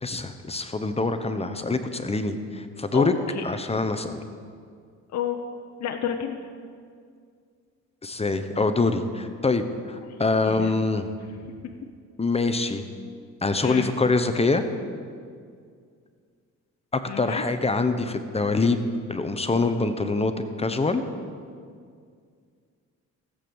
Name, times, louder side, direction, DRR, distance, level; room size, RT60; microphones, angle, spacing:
voice 1, 0.0-3.1 3.4-4.2 8.0-11.1 12.2-12.8 13.4-14.6 16.9-20.3 20.6-21.0, left 3 dB, 20° left, 9 dB, 0.9 m, -25 dB
voice 2, 2.9-3.4 5.1-5.4 5.8-6.4 10.1-10.2 10.4-10.7 11.6-11.7 13.6-13.9 17.1-17.4, left 8 dB, 60° left, 5 dB, 0.9 m, -30 dB
15.0 x 8.0 x 7.1 m, 2.2 s
cardioid pair, 90°, 30 cm